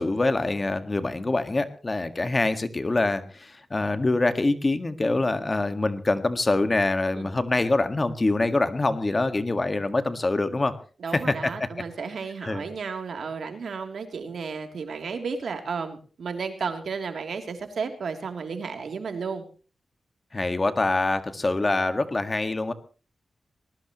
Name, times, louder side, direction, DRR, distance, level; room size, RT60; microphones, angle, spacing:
voice 1, 0.0-10.8 11.1-11.7 12.4-12.6 20.3-22.7, left 2 dB, 30° left, 9 dB, 1.7 m, -25 dB
voice 2, 11.0-19.4, right 5 dB, 75° right, 5 dB, 3.1 m, -33 dB
20.0 x 19.0 x 3.1 m, 0.38 s
cardioid pair, 80°, 0 cm